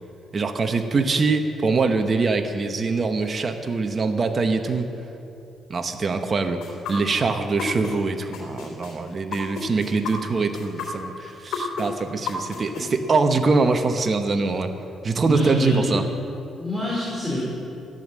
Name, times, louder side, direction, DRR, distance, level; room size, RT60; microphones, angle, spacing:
voice 1, 0.3-4.9 5.7-14.7 15.0-16.0, right 4 dB, 40° right, 6 dB, 1.1 m, -23 dB
sound 1, 6.6-7.9 8.3-12.8, left 6 dB, 85° left, 3.2 m, -32 dB
voice 2, 15.2-15.9 16.6-17.4, equal, 5° right, -6 dB, 4.5 m, -25 dB
15.0 x 11.0 x 7.5 m, 2.7 s
cardioid pair, 90°, 0 cm